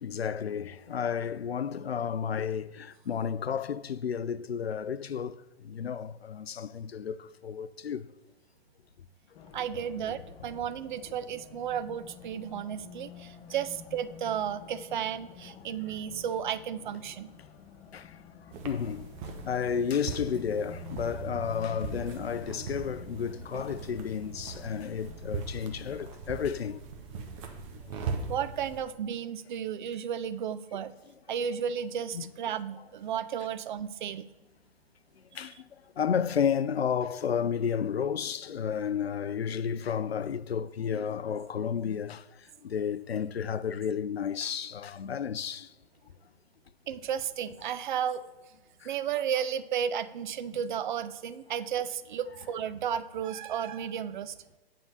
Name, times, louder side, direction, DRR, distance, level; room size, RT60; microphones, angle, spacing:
voice 1, 0.0-8.1 17.9-18.1 18.6-19.1 19.4-26.8 32.1-32.3 35.3-35.7 36.0-42.2 42.6-45.7 48.8-48.9, left 7 dB, 80° left, 0.5 m, -32 dB
Race car auto racing, 9.3-25.9, left 7 dB, 15° left, 0.5 m, -50 dB
voice 2, 9.5-17.3 28.3-30.9 31.3-34.3 35.4-35.5 46.9-48.3 48.8-54.4, right 8 dB, 50° right, 0.5 m, -33 dB
sound 1, 18.5-28.8, right 4 dB, 30° right, 0.9 m, -40 dB
8.9 x 3.7 x 6.4 m
figure-of-eight pair, 115°, 30 cm